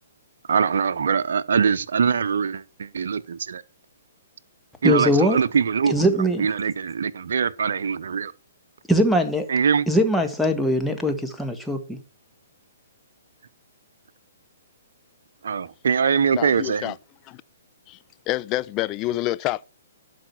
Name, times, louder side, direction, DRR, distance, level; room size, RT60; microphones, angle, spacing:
voice 1, 0.5-3.6 4.8-6.0 6.4-8.3 9.5-9.8 15.4-17.0, right 6 dB, 70° right, 0.8 m, -23 dB
voice 2, 4.8-5.4 5.9-6.5 8.9-9.5 9.9-12.0, equal, ahead, 1.6 m, -21 dB
voice 3, 16.3-16.9 17.3-17.4 17.9-18.0 18.3-19.6, left 16 dB, 30° left, 0.4 m, -27 dB
12.0 x 5.1 x 6.0 m
hypercardioid pair, 130°, 0 cm